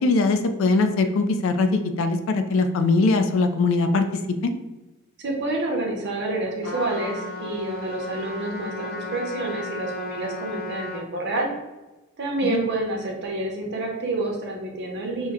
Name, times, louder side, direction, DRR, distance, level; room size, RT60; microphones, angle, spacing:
voice 1, 0.0-4.0 4.4-4.5 12.4-12.6, left 3 dB, 65° left, 7 dB, 0.3 m, -21 dB
voice 2, 5.2-11.5 12.2-15.3, right 2 dB, 55° right, 0 dB, 0.7 m, -28 dB
Trumpet, 6.6-11.1, left 2 dB, 45° left, 0.9 m, -34 dB
3.0 x 2.1 x 3.5 m, 1.1 s
head